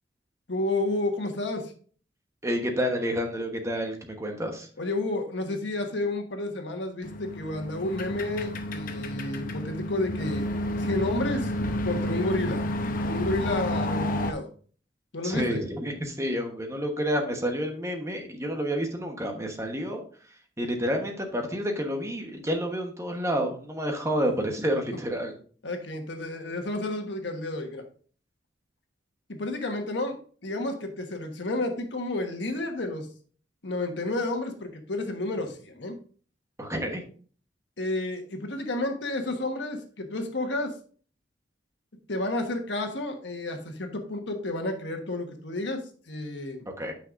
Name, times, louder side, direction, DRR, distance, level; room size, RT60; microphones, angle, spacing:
voice 1, 0.5-1.7 4.8-10.5 10.8-11.5 11.8-12.6 13.0-14.5 15.1-15.6 25.6-27.8 29.3-33.1 33.6-36.0 37.8-40.8 42.1-46.6, left 2 dB, 75° left, 4 dB, 1.3 m, -31 dB
voice 2, 2.4-4.7 15.2-20.0 20.6-25.3 36.6-37.0 46.8-46.9, equal, 15° right, 3 dB, 1.1 m, -29 dB
sound 1, 7.0-14.3, left 1 dB, 50° left, 0.7 m, -30 dB
8.9 x 5.8 x 2.5 m, 0.43 s
head